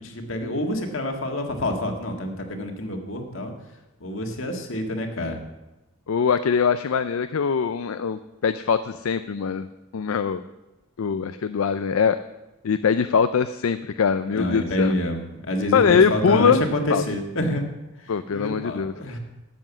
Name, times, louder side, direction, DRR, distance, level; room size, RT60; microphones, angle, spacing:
voice 1, 0.0-3.5 4.0-5.4 14.3-17.6 18.0-19.2, left 1 dB, 65° left, 4 dB, 1.8 m, -27 dB
voice 2, 6.1-9.7 9.9-10.4 11.0-12.2 12.6-15.0 15.7-16.6 16.9-17.0 18.1-18.9, left 6 dB, 80° left, 11 dB, 0.4 m, -22 dB
12.5 x 7.8 x 7.2 m, 1.0 s
head